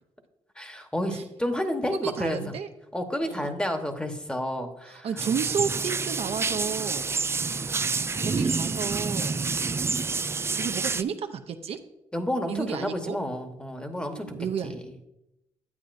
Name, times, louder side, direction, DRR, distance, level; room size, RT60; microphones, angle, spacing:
voice 1, 0.6-2.5 2.9-5.1 7.3-7.4 12.1-14.3 14.6-15.1, left 1 dB, 10° left, 6 dB, 1.1 m, -30 dB
voice 2, 2.0-2.7 3.3-3.5 4.9-7.1 7.8-9.4 10.6-11.8 12.5-13.2 14.0-14.8, right 7 dB, 65° right, 6 dB, 0.7 m, -32 dB
sound 1, 5.2-11.0, right 4 dB, 25° right, 0.3 m, -28 dB
9.6 x 8.4 x 2.6 m, 0.89 s
cardioid pair, 80°, 11 cm